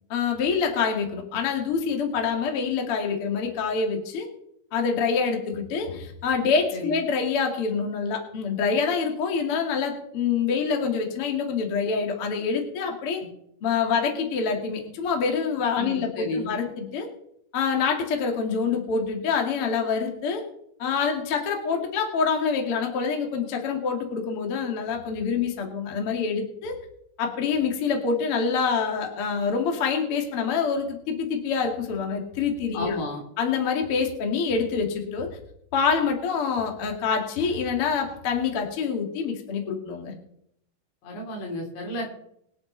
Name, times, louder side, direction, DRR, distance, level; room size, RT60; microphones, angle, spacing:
voice 1, 0.1-4.3 4.7-13.2 13.6-17.1 17.5-20.4 20.8-26.7 27.2-32.9 33.4-35.3 35.7-40.1, left 5 dB, 40° left, 2 dB, 2.3 m, -26 dB
voice 2, 15.8-16.5 32.7-33.2 41.0-42.1, left 1 dB, 80° left, -1 dB, 5.7 m, -32 dB
23.5 x 7.8 x 4.0 m, 0.72 s
omnidirectional pair, 5.1 m